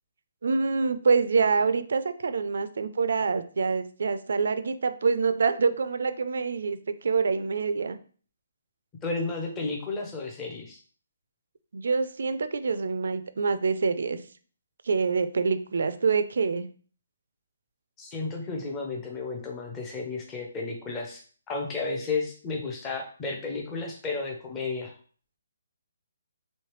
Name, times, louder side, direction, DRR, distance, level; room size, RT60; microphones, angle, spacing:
voice 1, 0.4-8.0 11.7-14.2 14.9-16.6, right 5 dB, 65° right, 12 dB, 0.3 m, -26 dB
voice 2, 9.0-10.8 18.0-24.9, left 3 dB, 10° left, 1 dB, 0.5 m, -33 dB
3.2 x 3.1 x 3.0 m, 0.42 s
hypercardioid pair, 175°, 0 cm